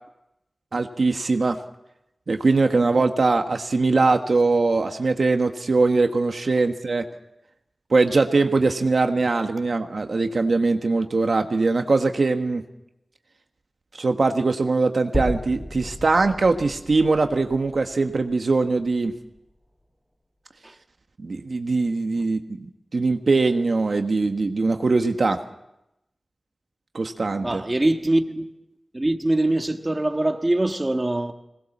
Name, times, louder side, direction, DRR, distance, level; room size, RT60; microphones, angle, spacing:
voice 1, 0.7-1.6 2.3-7.0 7.9-12.6 14.0-19.1 21.2-25.4 26.9-27.6, right 3 dB, 70° right, 1.4 m, -21 dB
sound 1, 15.1-19.4, equal, 10° left, 3.9 m, -34 dB
voice 2, 27.4-28.4 28.9-31.3, right 1 dB, 30° right, 1.7 m, -23 dB
22.0 x 19.5 x 7.3 m
wide cardioid pair, 75°, 0 cm